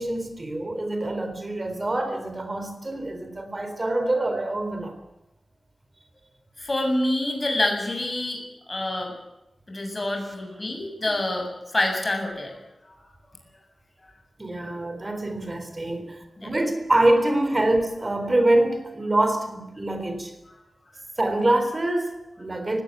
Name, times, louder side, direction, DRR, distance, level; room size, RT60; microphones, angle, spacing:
voice 1, 0.0-4.9 14.4-20.3 21.2-22.8, right 1 dB, 30° right, 8 dB, 4.0 m, -25 dB
voice 2, 6.6-8.4 8.7-9.1 9.7-11.5 11.7-12.5 16.4-16.5, left 1 dB, 30° left, 3 dB, 7.2 m, -26 dB
19.5 x 17.0 x 9.5 m, 0.92 s
wide cardioid pair, 105°, 0 cm